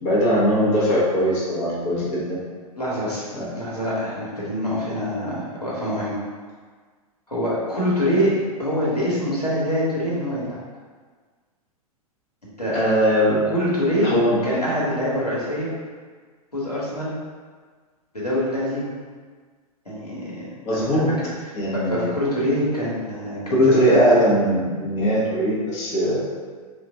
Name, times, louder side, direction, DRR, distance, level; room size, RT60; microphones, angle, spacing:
voice 1, 0.0-2.4 3.3-3.6 12.7-13.4 14.0-14.4 20.6-21.1 21.5-22.1 23.5-26.2, equal, 30° left, -7 dB, 1.0 m, -20 dB
voice 2, 2.8-3.3 3.6-6.2 7.3-8.3 8.6-10.6 12.6-12.8 13.5-14.1 14.4-15.7 16.5-17.1 18.1-18.9 19.8-20.9 21.7-23.6 23.9-24.1, equal, 85° left, -8 dB, 1.3 m, -25 dB
3.7 x 2.5 x 3.5 m, 1.5 s
figure-of-eight pair, 100°, 20 cm